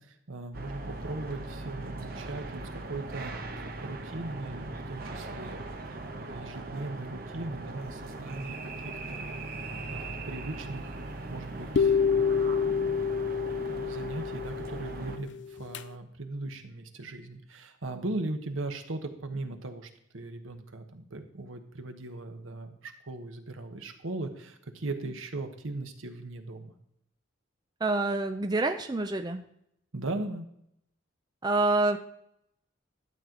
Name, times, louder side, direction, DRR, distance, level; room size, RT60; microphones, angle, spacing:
voice 1, 0.0-5.7 6.1-8.6 8.8-9.4 9.9-10.9 11.3-12.9 13.6-26.7 29.9-30.5, right 2 dB, 80° right, 6 dB, 1.2 m, -39 dB
sound 1, 0.5-15.2, right 2 dB, 45° right, 0.9 m, -39 dB
sound 2, 11.8-15.8, left 6 dB, 60° left, 0.4 m, -28 dB
voice 2, 27.8-29.4 31.4-32.0, right 2 dB, 20° right, 7 dB, 0.4 m, -27 dB
12.0 x 7.6 x 3.8 m, 0.75 s
head